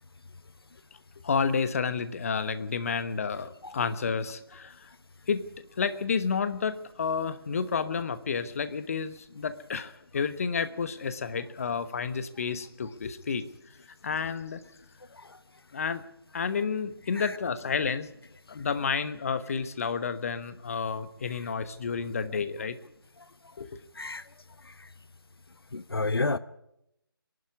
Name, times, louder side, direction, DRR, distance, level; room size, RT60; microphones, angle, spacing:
voice 1, 1.2-4.9 5.3-5.4 5.8-13.5 14.0-14.6 15.7-16.1 16.3-18.1 18.5-22.8 23.6-23.7, left 5 dB, 35° left, 13 dB, 1.1 m, -30 dB
voice 2, 23.9-24.3 24.6-24.9 25.7-26.4, left 3 dB, 75° left, 15 dB, 0.9 m, -32 dB
23.0 x 12.0 x 9.6 m, 0.81 s
figure-of-eight pair, 155°, 13 cm